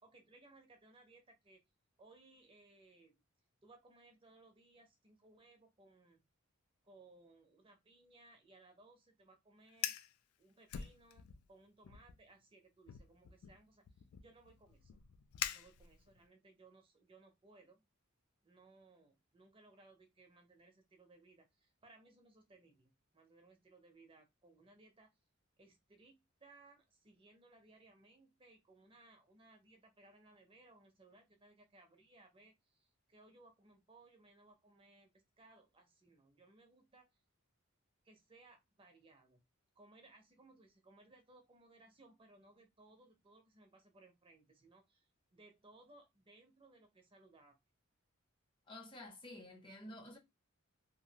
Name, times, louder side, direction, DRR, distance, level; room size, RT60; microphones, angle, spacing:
voice 1, 0.0-1.6 2.0-3.2 3.6-6.2 6.8-10.0 10.4-15.0 15.5-17.9 18.4-25.1 25.6-37.1 38.0-39.4 39.8-47.6, right 2 dB, 25° right, 0.5 m, -64 dB
Fire, 9.7-10.1 10.7-11.5 11.8-12.2 12.9-16.2, left 10 dB, 80° left, 0.3 m, -44 dB
voice 2, 48.7-50.2, left 1 dB, 25° left, 0.6 m, -51 dB
2.8 x 2.4 x 2.7 m
head